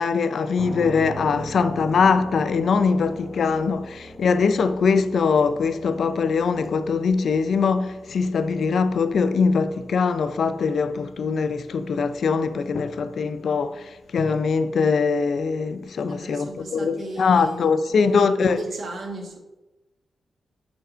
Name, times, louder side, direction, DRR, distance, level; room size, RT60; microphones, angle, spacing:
voice 1, 0.0-18.6, left 5 dB, 65° left, 0.5 m, -22 dB
sound 1, 0.6-14.3, right 1 dB, ahead, 0.9 m, -42 dB
voice 2, 16.1-19.4, right 2 dB, 60° right, 1.4 m, -36 dB
6.8 x 5.2 x 5.0 m
wide cardioid pair, 110°, 0 cm